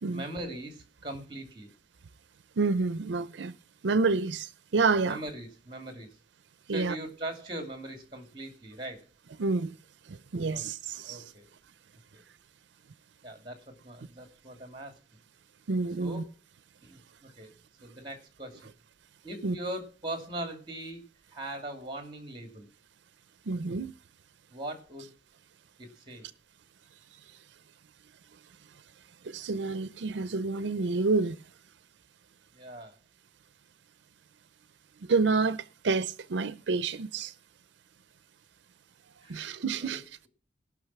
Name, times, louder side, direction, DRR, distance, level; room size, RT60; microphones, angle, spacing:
voice 1, 0.1-1.7 5.0-6.1 6.7-9.0 10.5-10.7 11.1-11.5 12.1-12.2 13.2-15.0 16.0-16.3 16.8-17.6 17.8-18.7 19.2-21.0 21.3-22.7 24.5-25.1 25.8-26.3 32.5-33.0 39.2-40.3, right 1 dB, 25° right, 2.7 m, -40 dB
voice 2, 2.6-3.5 3.8-5.2 6.7-6.9 9.4-9.7 10.1-11.2 15.7-16.2 19.4-19.5 23.5-23.9 29.3-31.4 35.1-37.3 39.3-40.0, right 4 dB, 90° right, 0.6 m, -28 dB
18.0 x 6.2 x 6.0 m
head